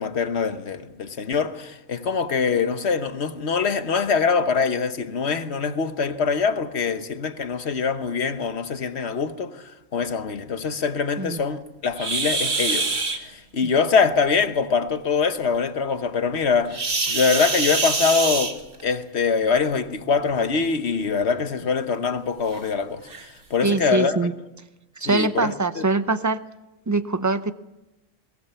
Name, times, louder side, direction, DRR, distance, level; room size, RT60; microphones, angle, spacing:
voice 1, 0.0-12.9 13.2-18.6 18.8-23.1 23.5-24.3 25.1-25.8, left 5 dB, 60° left, 1.3 m, -24 dB
sound 1, 12.0-13.2 16.7-19.0 20.2-20.4 20.9-21.0 21.6-21.7 22.5-22.6 23.1-23.3, right 3 dB, 45° right, 1.8 m, -25 dB
voice 2, 23.6-24.3 25.0-26.4 26.9-27.5, right 3 dB, 20° right, 0.5 m, -23 dB
22.0 x 19.5 x 7.0 m
omnidirectional pair, 1.3 m